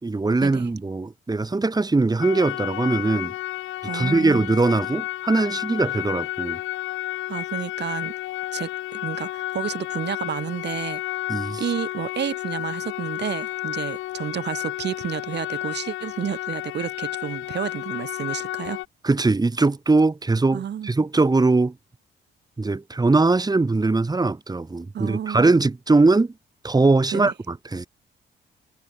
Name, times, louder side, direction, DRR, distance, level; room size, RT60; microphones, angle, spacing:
voice 1, 0.0-3.3 3.9-6.6 11.3-11.6 19.0-21.7 22.6-26.3 26.6-27.9, right 3 dB, 20° right, 2.7 m, -21 dB
sound 1, 2.2-18.9, left 16 dB, 90° left, 1.4 m, -31 dB
voice 2, 3.8-4.5 7.3-8.1 8.5-11.0 11.6-18.8 20.5-20.9 24.9-25.5 27.1-27.3, right 9 dB, 60° right, 3.4 m, -31 dB
cardioid pair, 90°, 20 cm